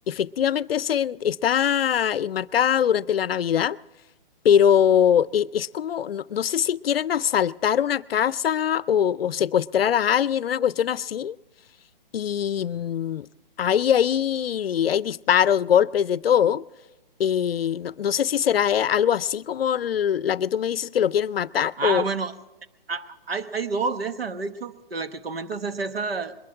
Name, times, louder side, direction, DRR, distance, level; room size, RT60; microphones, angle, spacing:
voice 1, 0.1-3.8 4.4-11.4 12.1-13.3 13.6-16.6 17.2-22.0, left 9 dB, 80° left, 0.5 m, -22 dB
voice 2, 21.8-22.3 22.9-26.3, right 4 dB, 85° right, 1.2 m, -29 dB
22.0 x 12.0 x 4.8 m
hypercardioid pair, 145°, 29 cm